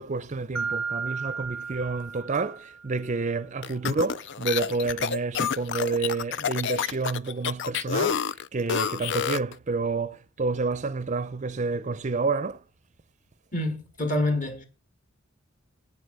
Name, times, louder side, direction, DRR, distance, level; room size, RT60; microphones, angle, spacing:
voice 1, 0.0-12.6, right 4 dB, 35° right, 0.5 m, -29 dB
Mallet percussion, 0.6-3.1, right 5 dB, 5° left, 0.7 m, -34 dB
sound 1, 3.6-9.5, left 7 dB, 60° left, 0.4 m, -29 dB
voice 2, 13.5-14.7, left 1 dB, 40° left, 2.3 m, -27 dB
8.8 x 8.0 x 6.7 m
head